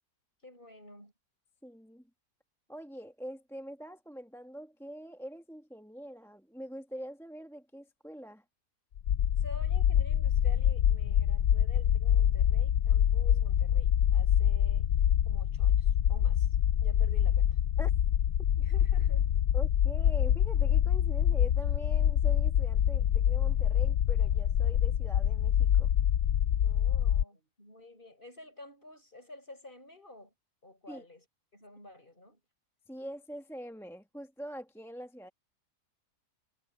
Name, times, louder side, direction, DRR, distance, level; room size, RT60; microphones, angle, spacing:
voice 1, 0.4-1.1 9.4-14.9 15.2-16.6 16.8-17.6 18.6-19.4 26.6-30.3 30.6-31.2 31.5-32.4, left 2 dB, 30° left, 7.4 m, -51 dB
voice 2, 1.6-2.0 2.7-8.4 17.8-17.9 19.5-25.9 30.9-31.0 32.9-35.3, equal, ahead, 1.2 m, -44 dB
sound 1, 9.0-27.2, left 10 dB, 65° left, 0.7 m, -26 dB
omnidirectional pair, 1.7 m